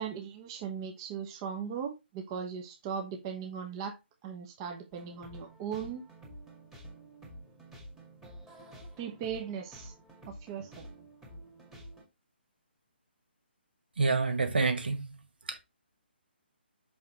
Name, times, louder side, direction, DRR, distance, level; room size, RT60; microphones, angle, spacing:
voice 1, 0.0-4.0 4.2-6.0 9.0-9.9 10.3-10.9, right 7 dB, 25° right, 1.1 m, -38 dB
sound 1, 4.9-12.0, equal, 5° right, 1.9 m, -50 dB
voice 2, 14.0-15.1 15.4-15.6, right 4 dB, 60° right, 1.6 m, -28 dB
6.0 x 5.4 x 3.1 m
figure-of-eight pair, 140°, 6 cm